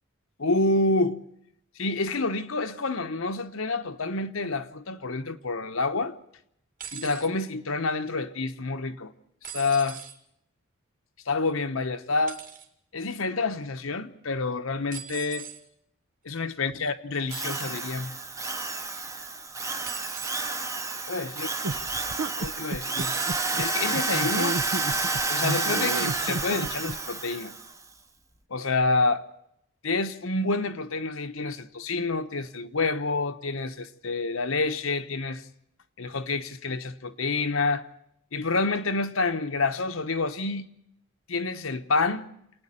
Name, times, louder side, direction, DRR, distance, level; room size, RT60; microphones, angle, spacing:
voice 1, 0.4-1.2 1.8-6.1 6.9-9.1 9.5-10.0 11.3-12.4 12.9-15.5 16.2-18.1 21.1-21.5 22.4-23.1 23.6-24.6 25.3-27.5 28.5-29.2 29.8-35.4 36.0-37.8 38.3-40.7 41.3-42.3, left 3 dB, 65° left, 1.0 m, -28 dB
sound 1, 6.8-7.3 9.4-10.2 12.3-12.7 14.9-15.6 17.3-17.8 19.9-20.6 21.1-21.4 23.0-23.6 24.6-24.7, right 8 dB, 40° right, 2.1 m, -40 dB
Drill, 17.3-27.7, right 3 dB, 15° right, 0.8 m, -30 dB
sound 2, 21.6-27.0, right 2 dB, 75° right, 0.8 m, -32 dB
28.5 x 9.8 x 10.0 m
head